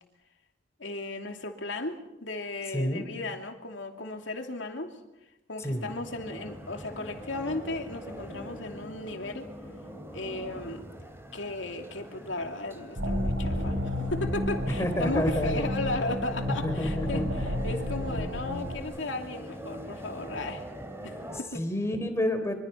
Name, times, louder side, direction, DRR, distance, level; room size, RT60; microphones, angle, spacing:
voice 1, 0.8-5.0 5.5-9.5 10.1-10.9 11.3-20.7 21.0-21.7, left 2 dB, 70° left, 4 dB, 2.7 m, -35 dB
voice 2, 2.7-3.1 5.6-5.9 14.8-15.7 16.6-17.3 21.5-22.5, left 1 dB, 15° left, 6 dB, 3.6 m, -29 dB
sound 1, 5.6-21.4, equal, 15° right, 2.8 m, -43 dB
sound 2, 13.0-18.8, left 1 dB, 75° right, 4.9 m, -31 dB
25.5 x 24.0 x 5.7 m, 0.95 s
head